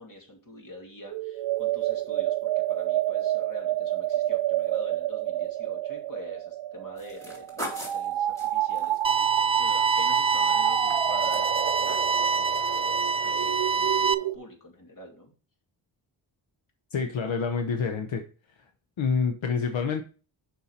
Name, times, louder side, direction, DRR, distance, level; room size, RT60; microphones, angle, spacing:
voice 1, 0.0-15.3, left 1 dB, 45° left, 1 dB, 2.4 m, -45 dB
sound 1, 1.1-14.4, right 14 dB, 65° right, 0.5 m, -29 dB
sound 2, 7.0-10.3 10.6-12.2 12.5-12.9 13.2-13.3, equal, 5° left, 3.5 m, -41 dB
sound 3, 9.0-14.1, right 4 dB, 15° right, 0.3 m, -26 dB
voice 2, 16.9-18.2 18.6-18.7 19.0-20.0, left 5 dB, 75° left, 6 dB, 0.9 m, -27 dB
7.0 x 5.7 x 4.2 m, 0.38 s
wide cardioid pair, 110°, 46 cm